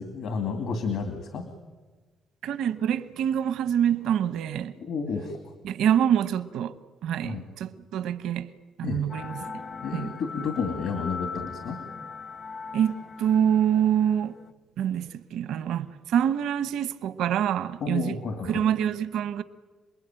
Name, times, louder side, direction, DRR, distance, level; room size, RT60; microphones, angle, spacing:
voice 1, 0.0-1.5 4.8-5.4 7.2-7.4 8.8-9.0 9.8-11.8 17.8-18.7, left 5 dB, 75° left, 2.6 m, -31 dB
voice 2, 2.4-4.7 5.6-6.8 7.0-8.5 8.8-9.5 9.9-10.1 12.7-14.3 14.8-18.2 18.5-19.4, right 9 dB, 85° right, 1.1 m, -26 dB
sound 1, 9.1-14.5, left 5 dB, 45° left, 0.8 m, -39 dB
28.0 x 21.0 x 9.0 m
cardioid pair, 90°, 0 cm